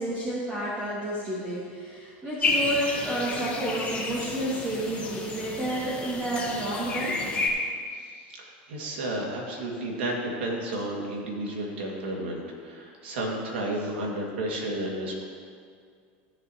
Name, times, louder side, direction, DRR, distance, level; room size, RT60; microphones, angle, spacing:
voice 1, 0.0-7.2 10.8-10.9, right 1 dB, 25° right, -8 dB, 2.2 m, -30 dB
sound 1, 2.4-7.5, left 3 dB, 20° left, 1.8 m, -31 dB
voice 2, 7.9-15.2, right 1 dB, 90° right, -1 dB, 2.2 m, -32 dB
16.0 x 7.4 x 3.0 m, 2.1 s
supercardioid pair, 120°, 6 cm